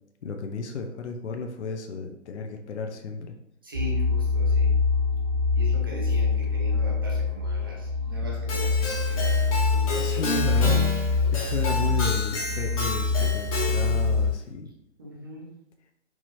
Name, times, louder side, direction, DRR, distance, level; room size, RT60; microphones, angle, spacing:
voice 1, 0.2-3.3 10.0-10.9 11.3-14.7, left 4 dB, 65° left, 4 dB, 0.6 m, -33 dB
voice 2, 3.6-4.8 5.6-10.8 11.2-11.4 15.0-15.5, left 1 dB, 20° right, -2 dB, 0.5 m, -40 dB
sound 1, 3.7-14.3, left 4 dB, 55° right, 0.7 m, -25 dB
Keyboard (musical), 8.5-14.1, left 2 dB, 30° left, 1.1 m, -31 dB
4.7 x 2.9 x 2.6 m, 0.81 s
hypercardioid pair, 150°, 37 cm